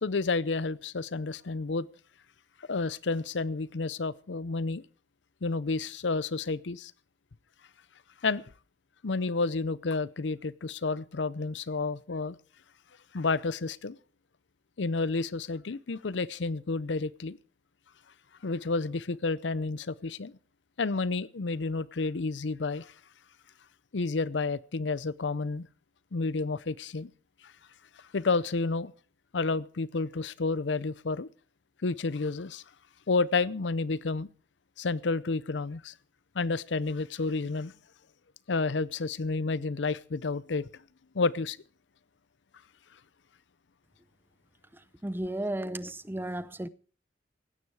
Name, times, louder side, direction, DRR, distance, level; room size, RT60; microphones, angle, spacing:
voice 1, 0.0-1.9 2.7-4.8 5.4-6.9 8.2-8.4 9.0-12.4 13.1-14.0 14.8-17.4 18.4-20.3 20.8-22.9 23.9-25.7 26.1-27.1 28.1-28.9 29.3-31.3 31.8-32.6 33.1-34.3 34.8-35.9 36.3-37.7 38.5-40.7 41.1-41.6, left 3 dB, 75° left, 0.6 m, -30 dB
voice 2, 45.0-46.7, right 1 dB, 10° right, 0.6 m, -34 dB
16.5 x 12.0 x 4.8 m
head